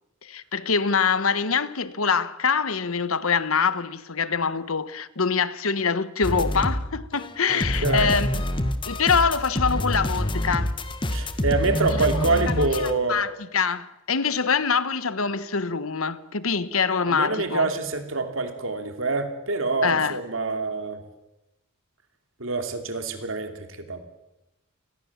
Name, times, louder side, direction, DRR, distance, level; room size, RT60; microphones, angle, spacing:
voice 1, 0.2-8.3 8.9-10.8 11.9-12.1 12.6-12.7 13.1-17.7 19.8-20.2, left 5 dB, 80° left, 1.3 m, -24 dB
sound 1, 6.2-6.9 7.1-12.9, left 1 dB, 25° left, 1.6 m, -26 dB
voice 2, 7.5-8.1 11.1-13.2 17.1-21.0 22.4-24.0, right 3 dB, 65° right, 2.9 m, -26 dB
29.5 x 20.5 x 7.3 m
head